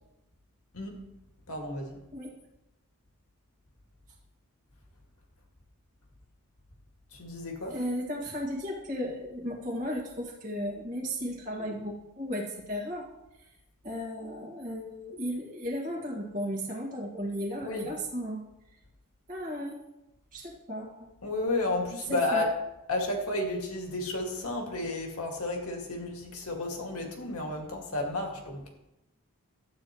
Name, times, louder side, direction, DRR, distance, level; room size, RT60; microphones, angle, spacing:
voice 1, 1.5-2.0 7.1-7.8 17.6-17.9 21.2-22.5 22.9-28.7, left 2 dB, 80° left, 2 dB, 2.0 m, -32 dB
voice 2, 7.7-13.1 13.8-18.4 19.3-19.8 20.3-21.1 22.1-22.4, equal, 35° right, -4 dB, 1.8 m, -35 dB
12.5 x 8.7 x 3.0 m, 0.93 s
head